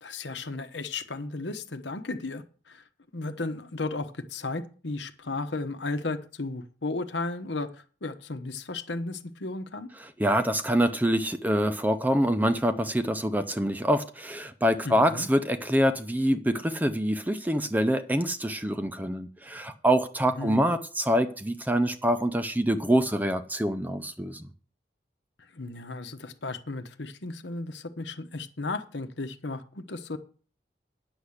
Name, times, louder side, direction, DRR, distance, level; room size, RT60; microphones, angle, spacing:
voice 1, 0.0-2.8 3.1-7.7 8.0-9.9 14.8-15.3 20.4-20.7 25.5-30.2, left 3 dB, 80° left, 1.1 m, -34 dB
voice 2, 10.2-24.4, equal, 10° right, 0.6 m, -25 dB
9.9 x 7.1 x 6.5 m
head